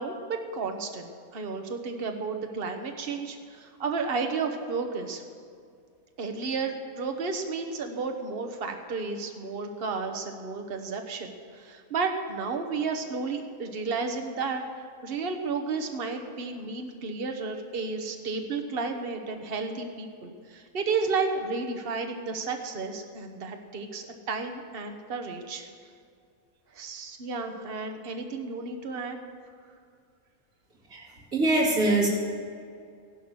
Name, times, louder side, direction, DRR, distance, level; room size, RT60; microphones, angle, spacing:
voice 1, 0.0-5.2 6.2-14.6 15.0-25.7 26.7-29.2, right 4 dB, 45° right, 4 dB, 1.3 m, -32 dB
voice 2, 30.9-32.1, right 2 dB, 80° right, -4 dB, 3.3 m, -24 dB
15.5 x 11.5 x 6.4 m, 2.2 s
omnidirectional pair, 1.5 m